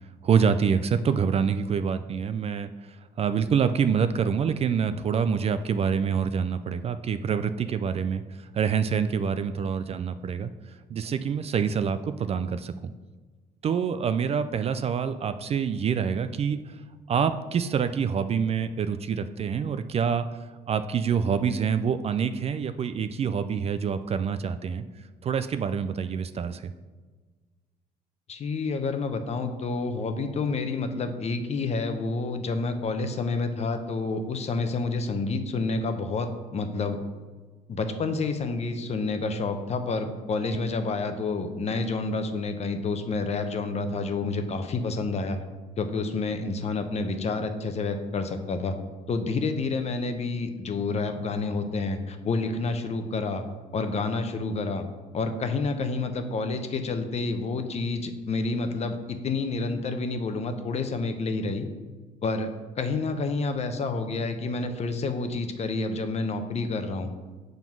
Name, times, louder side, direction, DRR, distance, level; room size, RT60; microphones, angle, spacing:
voice 1, 0.2-12.9 13.6-16.8 17.1-24.8 25.2-26.7, right 7 dB, 35° right, 11 dB, 0.4 m, -26 dB
voice 2, 28.3-37.0 37.7-45.4 45.8-48.8 49.1-53.4 53.7-54.9 55.1-61.7 62.2-67.1, left 3 dB, 40° left, 7 dB, 0.8 m, -29 dB
7.1 x 3.9 x 5.9 m, 1.4 s
cardioid pair, 110°, 17 cm